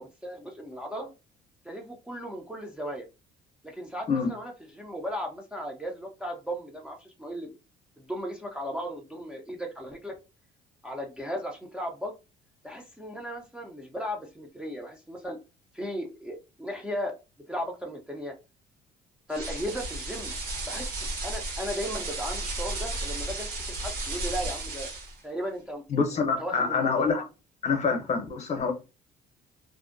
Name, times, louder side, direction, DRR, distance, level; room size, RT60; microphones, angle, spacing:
voice 1, 0.2-1.1 1.6-3.1 3.6-7.5 8.0-10.2 10.8-12.1 12.6-15.4 15.7-17.2 17.5-18.3 19.3-20.3 20.7-24.9 25.2-25.8 26.4-27.1, equal, 5° right, 0.4 m, -36 dB
sound 1, 19.3-25.2, right 2 dB, 60° right, 1.0 m, -34 dB
voice 2, 25.9-27.2 27.6-28.7, left 5 dB, 40° left, 0.7 m, -26 dB
2.5 x 2.1 x 2.5 m
cardioid pair, 110°, 17 cm